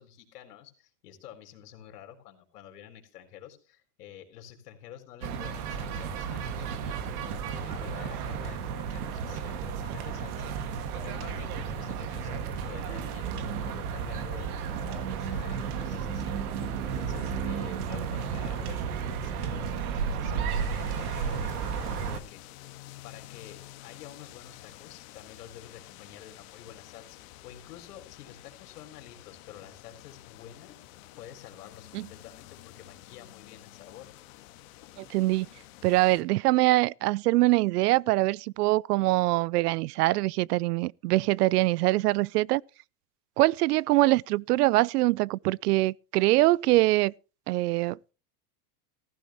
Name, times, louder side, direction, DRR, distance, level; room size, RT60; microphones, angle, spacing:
voice 1, 0.0-22.4 23.0-30.8 31.2-34.1, left 10 dB, 85° left, 4.0 m, -49 dB
sound 1, 5.2-22.2, right 6 dB, 70° right, 2.1 m, -33 dB
sound 2, 20.5-36.2, left 16 dB, 55° left, 1.7 m, -50 dB
voice 2, 35.0-35.5 35.8-42.6 43.4-47.1 47.5-48.1, right 19 dB, 90° right, 0.5 m, -24 dB
15.5 x 14.5 x 3.0 m
supercardioid pair, 155°, 46 cm